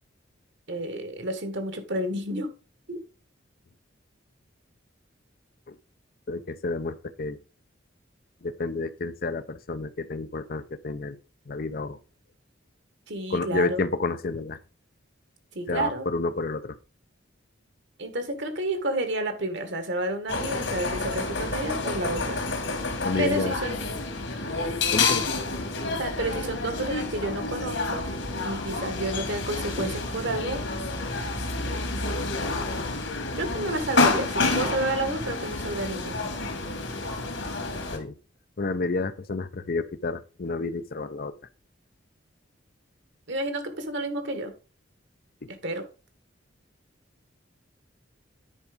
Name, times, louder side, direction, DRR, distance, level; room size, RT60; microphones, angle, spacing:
voice 1, 0.7-2.5 2.9-3.0 13.1-13.8 15.6-16.1 18.0-22.4 23.2-23.8 26.0-28.0 28.4-30.6 31.6-32.0 33.4-36.3 43.3-44.5 45.6-45.8, right 1 dB, 65° right, 1.8 m, -30 dB
voice 2, 6.3-7.4 8.4-11.2 11.5-12.0 13.3-14.6 15.7-16.8 23.0-23.5 24.9-25.3 37.9-38.2 38.6-41.3 45.4-45.5, left 3 dB, 50° left, 0.6 m, -30 dB
sound 1, 20.3-38.0, left 3 dB, 75° left, 2.5 m, -29 dB
9.9 x 4.7 x 5.1 m
head